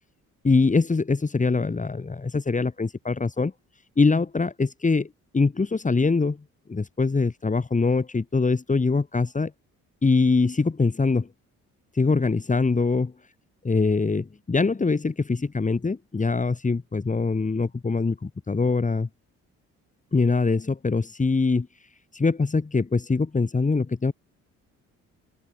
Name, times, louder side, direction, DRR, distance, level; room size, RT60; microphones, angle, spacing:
voice 1, 0.4-3.5 4.0-5.1 5.3-6.4 6.7-9.5 10.0-11.3 11.9-13.1 13.6-19.1 20.1-21.7 22.1-24.1, left 4 dB, 25° left, 4.2 m, -23 dB
open air
cardioid pair, 90°, 30 cm